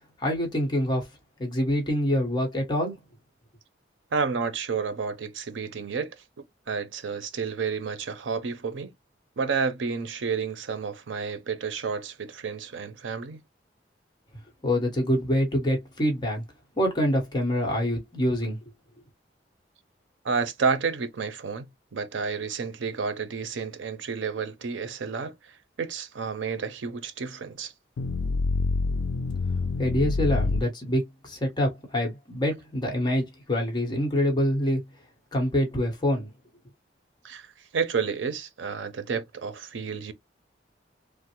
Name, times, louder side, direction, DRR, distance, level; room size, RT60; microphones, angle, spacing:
voice 1, 0.2-1.1 1.4-2.9 14.6-16.4 16.8-18.6 29.8-34.8 35.3-36.3, equal, 25° left, 1.0 m, -25 dB
voice 2, 4.1-6.2 6.7-8.9 9.4-13.4 20.2-27.7 37.2-40.1, right 5 dB, 85° right, 0.5 m, -30 dB
sound 1, 28.0-30.6, left 3 dB, 85° left, 0.3 m, -26 dB
3.1 x 2.0 x 2.9 m
head